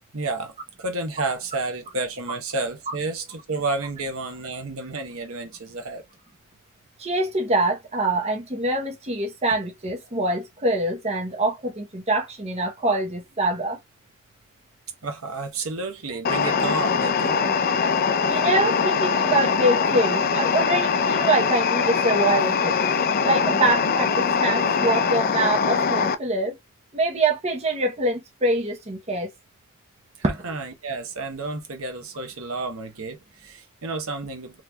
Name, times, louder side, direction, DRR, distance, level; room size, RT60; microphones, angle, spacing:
voice 1, 0.1-0.5 0.8-6.0 15.0-17.4 30.2-34.6, right 3 dB, 65° right, 0.9 m, -31 dB
voice 2, 7.0-13.8 18.3-22.8 23.2-26.6 26.9-29.3, right 2 dB, 30° right, 0.8 m, -24 dB
sound 1, 16.2-26.1, left 5 dB, 40° left, 0.4 m, -22 dB
3.8 x 3.0 x 2.2 m
head